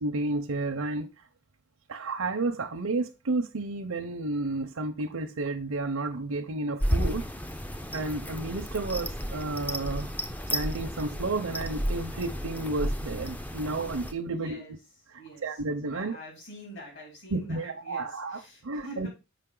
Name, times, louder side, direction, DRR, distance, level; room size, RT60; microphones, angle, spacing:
voice 1, 0.0-1.1 1.9-7.3 7.9-10.2 10.5-14.6 15.4-16.2 17.3-19.1, right 2 dB, 80° right, 0.7 m, -31 dB
sound 1, 6.8-14.1, equal, 5° left, 0.4 m, -32 dB
voice 2, 14.2-14.7 15.2-15.6 15.9-19.1, right 1 dB, 60° left, 4.6 m, -45 dB
6.7 x 5.2 x 3.8 m
head